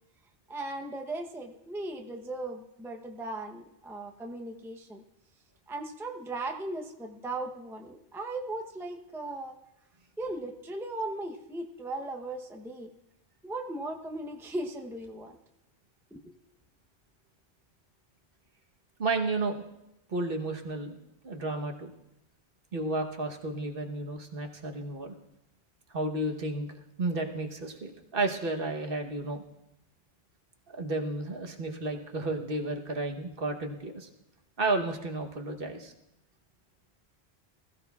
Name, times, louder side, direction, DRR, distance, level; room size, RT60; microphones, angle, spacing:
voice 1, 0.5-5.0 5.7-9.6 10.2-12.9 13.4-15.4 16.1-16.3, right 2 dB, 5° right, 2 dB, 0.6 m, -37 dB
voice 2, 19.0-19.6 20.1-21.0 21.2-21.9 22.7-25.1 25.9-26.7 27.0-29.4 30.7-34.1 34.6-35.9, right 2 dB, 55° right, 3 dB, 1.2 m, -32 dB
20.5 x 14.5 x 2.3 m, 0.87 s
omnidirectional pair, 1.1 m